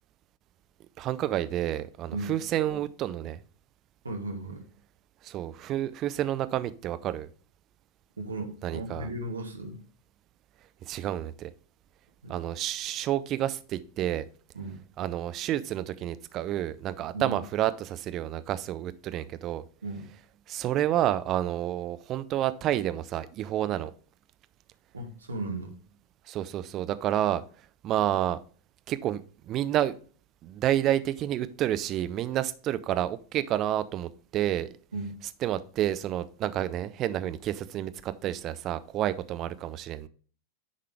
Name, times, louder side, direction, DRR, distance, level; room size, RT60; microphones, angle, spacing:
voice 1, 1.0-3.4 5.2-7.3 8.6-9.1 10.8-11.5 12.3-14.3 15.0-19.6 20.5-23.9 26.3-27.4 27.8-28.4 28.9-29.2 29.5-29.9 30.4-34.7 35.4-40.1, right 12 dB, 35° right, 0.5 m, -29 dB
voice 2, 4.0-4.7 8.2-9.8 12.2-12.4 14.5-14.8 17.1-17.4 19.8-20.1 24.9-25.8 34.9-35.1, right 2 dB, 75° right, 1.5 m, -36 dB
9.9 x 3.8 x 3.3 m
figure-of-eight pair, 90°, 0 cm